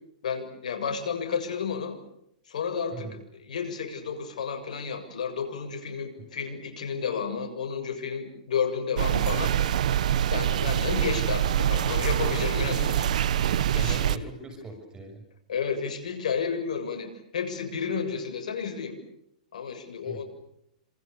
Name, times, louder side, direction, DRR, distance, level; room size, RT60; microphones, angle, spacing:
voice 1, 0.2-2.0 2.5-3.1 3.5-9.8 10.3-13.1 13.4-14.0 15.5-19.0 19.5-20.2, left 6 dB, 75° left, 5 dB, 7.4 m, -31 dB
sound 1, 9.0-14.2, right 10 dB, 70° right, 1.1 m, -25 dB
voice 2, 13.7-15.3 20.0-20.2, right 3 dB, 20° right, 6 dB, 6.8 m, -40 dB
29.0 x 27.0 x 7.0 m, 0.78 s
hypercardioid pair, 125°, 4 cm